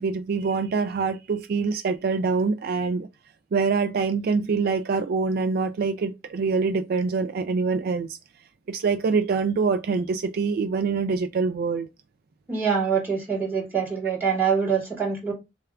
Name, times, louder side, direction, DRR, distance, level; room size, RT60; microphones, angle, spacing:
voice 1, 0.0-3.1 3.5-8.2 8.7-11.9, right 4 dB, 55° right, 0.3 m, -25 dB
voice 2, 12.5-15.3, right 6 dB, 10° right, 2.5 m, -24 dB
6.4 x 2.3 x 2.3 m
head